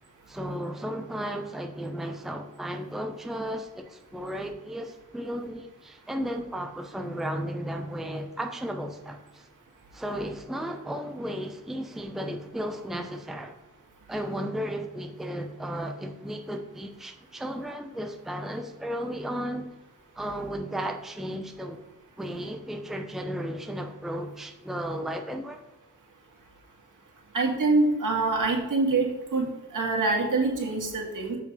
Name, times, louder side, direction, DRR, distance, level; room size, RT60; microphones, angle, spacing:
voice 1, 0.3-9.5 9.9-13.5 14.1-19.7 20.1-21.8 22.2-25.6, equal, ahead, 5 dB, 0.7 m, -34 dB
voice 2, 27.3-31.4, right 3 dB, 70° right, -1 dB, 2.3 m, -25 dB
7.8 x 5.0 x 5.4 m, 1.1 s
wide cardioid pair, 100°, 32 cm